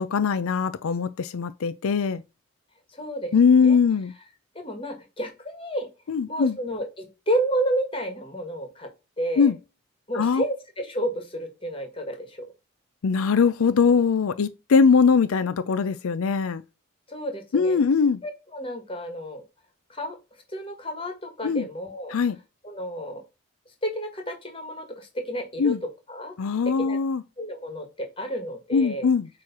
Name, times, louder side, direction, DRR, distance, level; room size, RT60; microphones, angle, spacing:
voice 1, 0.0-2.2 3.3-4.1 6.1-6.6 9.4-9.5 10.1-10.4 13.0-16.6 17.5-18.2 21.4-21.7 22.1-22.4 25.6-25.8 26.4-27.2 28.7-29.3, left 5 dB, 90° left, 0.5 m, -21 dB
voice 2, 2.9-3.3 3.6-3.8 4.5-5.9 6.3-8.9 9.2-9.5 10.1-12.5 17.1-17.8 18.2-19.4 19.9-20.2 20.5-22.2 22.6-23.2 23.8-25.7 26.1-26.3 26.8-27.0 27.4-29.1, right 1 dB, 25° left, 1.7 m, -31 dB
8.5 x 3.2 x 5.8 m
head